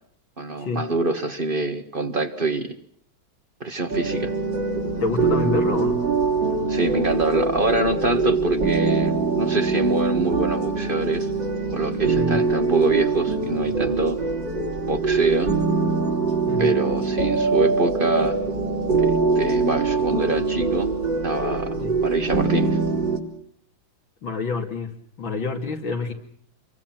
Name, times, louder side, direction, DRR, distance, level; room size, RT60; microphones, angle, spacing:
voice 1, 0.4-2.7 3.6-4.3 6.7-11.3 11.7-14.2 14.9-15.5 16.6-18.4 19.0-20.9 21.2-21.7 22.0-22.8, right 2 dB, 30° right, 9 dB, 1.6 m, -25 dB
sound 1, 3.9-23.2, right 4 dB, 65° right, 4.6 m, -23 dB
voice 2, 5.0-6.0 12.1-12.4 16.5-16.7 21.8-21.9 24.2-26.1, left 4 dB, 75° left, 2 dB, 3.4 m, -27 dB
28.0 x 23.0 x 6.1 m, 0.62 s
omnidirectional pair, 2.2 m